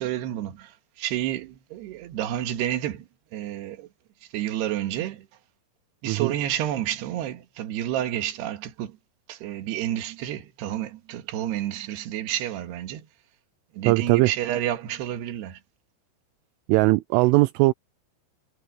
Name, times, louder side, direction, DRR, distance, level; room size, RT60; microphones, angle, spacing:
voice 1, 0.0-3.1 3.3-3.9 4.3-5.3 6.0-9.0 9.3-13.1 13.8-15.6, right 12 dB, 65° right, 3.4 m, -30 dB
voice 2, 13.9-14.3 16.7-17.7, right 22 dB, 85° right, 3.1 m, -19 dB
omnidirectional pair, 5.8 m